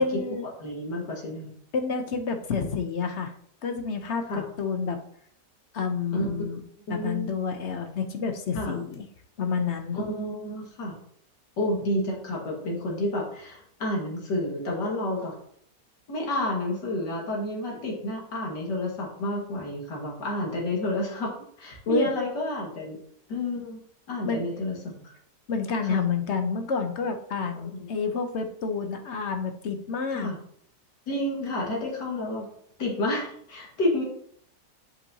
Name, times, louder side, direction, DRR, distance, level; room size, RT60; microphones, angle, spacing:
voice 1, 0.0-0.5 1.7-3.3 3.6-5.0 5.7-6.6 6.9-9.0 9.4-10.0 21.9-22.1 24.3-24.5 25.5-30.3, left 5 dB, 55° left, 6 dB, 0.8 m, -29 dB
voice 2, 0.6-1.6 2.5-2.7 4.3-4.5 6.1-6.3 6.9-7.3 8.5-8.8 9.9-11.0 11.6-15.3 16.1-23.0 23.3-23.8 24.1-25.1 25.8-26.0 27.6-27.9 30.1-30.4 31.1-32.5 32.8-34.0, left 1 dB, 90° left, -2 dB, 2.4 m, -30 dB
8.1 x 5.4 x 2.8 m, 0.63 s
omnidirectional pair, 1.8 m